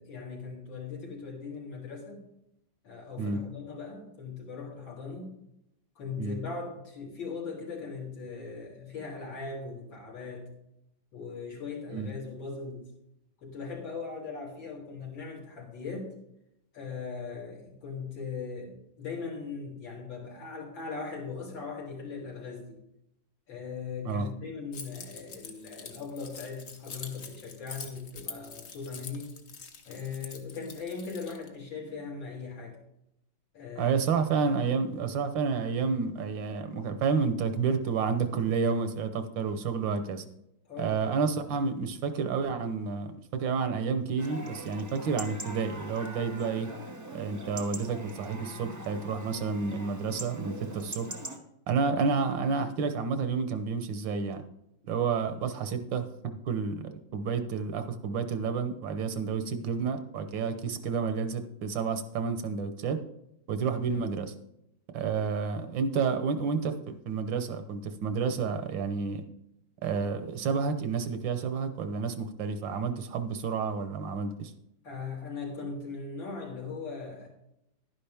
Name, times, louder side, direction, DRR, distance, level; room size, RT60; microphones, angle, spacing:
voice 1, 0.0-2.3 2.8-5.4 6.0-10.5 11.1-12.9 13.4-16.2 16.7-22.8 23.5-29.3 29.9-32.8 33.5-34.0 40.7-41.0 74.8-77.3, left 4 dB, 75° left, -2 dB, 3.4 m, -39 dB
Keys jangling, 24.7-31.5, left 5 dB, 50° left, 1.3 m, -45 dB
voice 2, 33.8-40.2 40.8-46.7 47.1-51.1 51.7-54.4 54.9-56.1 56.5-56.7 57.1-63.0 63.5-64.3 64.9-69.2 69.8-74.5, right 5 dB, 75° right, 9 dB, 1.6 m, -30 dB
Chatter / Livestock farm animals working animals / Chirp tweet, 44.2-51.4, right 2 dB, 15° right, 0.6 m, -42 dB
11.5 x 10.0 x 3.5 m, 0.82 s
omnidirectional pair, 2.1 m